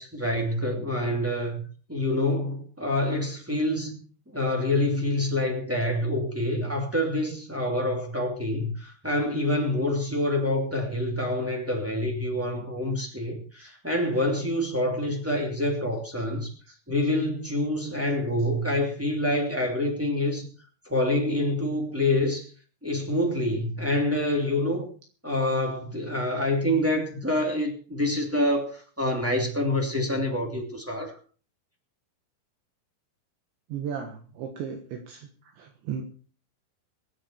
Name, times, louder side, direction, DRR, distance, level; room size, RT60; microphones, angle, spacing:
voice 1, 0.0-1.6 1.9-4.0 4.2-16.5 16.9-20.5 20.8-22.5 22.8-24.9 25.2-31.2, left 1 dB, 10° right, 0.6 m, -26 dB
voice 2, 33.7-36.0, right 7 dB, 70° right, 3.5 m, -35 dB
23.0 x 8.7 x 4.3 m
omnidirectional pair, 5.9 m